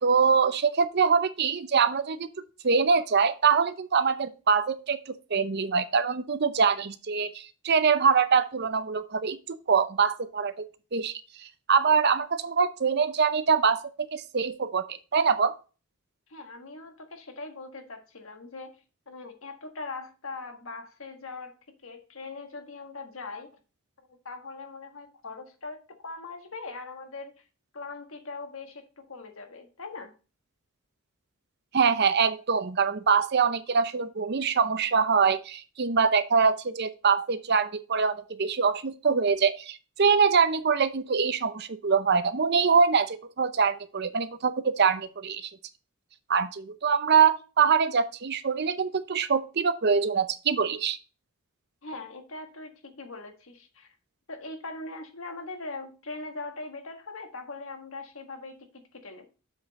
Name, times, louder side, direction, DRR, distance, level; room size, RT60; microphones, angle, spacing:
voice 1, 0.0-2.3 2.6-10.7 10.9-11.2 11.7-15.5 31.7-45.5 46.3-51.0, right 5 dB, 50° right, 0.6 m, -24 dB
voice 2, 16.3-21.6 21.8-23.5 24.1-27.4 27.7-30.1 51.8-53.9 54.3-59.3, left 3 dB, 65° left, 1.5 m, -41 dB
7.2 x 6.2 x 4.0 m
head